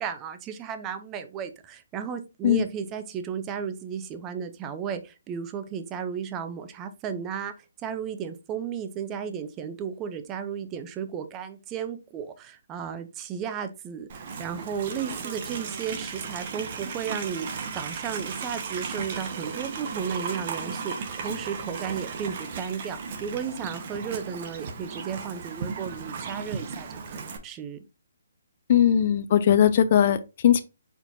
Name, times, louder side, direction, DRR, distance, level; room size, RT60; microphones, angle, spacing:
voice 1, 0.0-7.5 7.8-27.8, right 7 dB, 20° right, 0.5 m, -34 dB
Livestock farm animals working animals, 14.1-27.4, right 5 dB, 45° right, 0.9 m, -35 dB
voice 2, 28.7-30.6, left 9 dB, 45° left, 0.4 m, -19 dB
4.5 x 4.2 x 2.6 m
hypercardioid pair, 155°, 0 cm